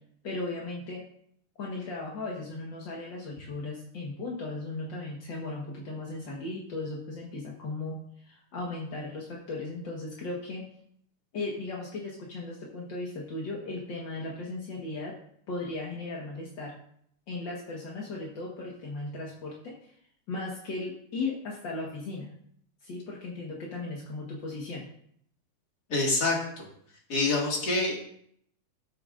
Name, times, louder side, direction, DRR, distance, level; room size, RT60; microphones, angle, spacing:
voice 1, 0.2-1.0 1.6-10.6 11.3-15.1 15.5-16.8 17.3-20.0 20.3-22.3 22.8-24.9, left 2 dB, 50° left, -3 dB, 1.4 m, -36 dB
voice 2, 25.9-26.7 27.1-28.0, left 2 dB, 35° left, -1 dB, 2.1 m, -26 dB
13.5 x 8.8 x 2.5 m, 0.67 s
omnidirectional pair, 3.8 m